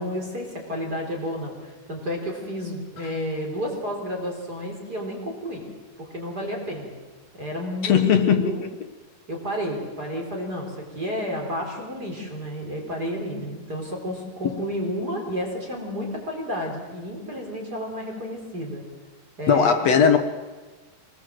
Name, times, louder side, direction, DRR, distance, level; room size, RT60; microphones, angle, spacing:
voice 1, 0.0-5.7 6.0-6.9 7.3-8.6 9.3-18.8 19.4-19.8, equal, 25° right, 0 dB, 4.4 m, -31 dB
voice 2, 7.8-8.4 14.4-14.6 19.5-20.2, left 7 dB, 60° left, 6 dB, 2.1 m, -18 dB
25.0 x 21.0 x 7.8 m, 1.3 s
omnidirectional pair, 4.1 m